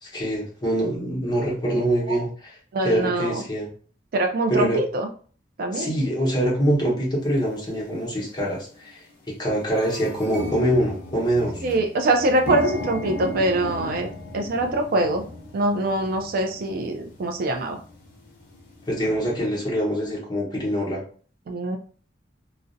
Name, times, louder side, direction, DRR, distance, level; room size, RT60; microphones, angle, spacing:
voice 1, 0.0-2.5 2.8-3.7 4.5-4.8 5.7-11.6 18.9-21.0, equal, 25° left, -4 dB, 0.8 m, -24 dB
voice 2, 2.7-3.4 4.1-5.1 5.6-5.9 11.6-14.1 14.3-15.2 15.5-17.8 21.5-21.8, right 2 dB, 55° right, 4 dB, 0.3 m, -23 dB
sound 1, 7.4-7.5 8.2-8.5 8.9-9.0 9.2-18.9, left 2 dB, 55° left, 0.6 m, -36 dB
2.4 x 2.0 x 2.5 m, 0.43 s
head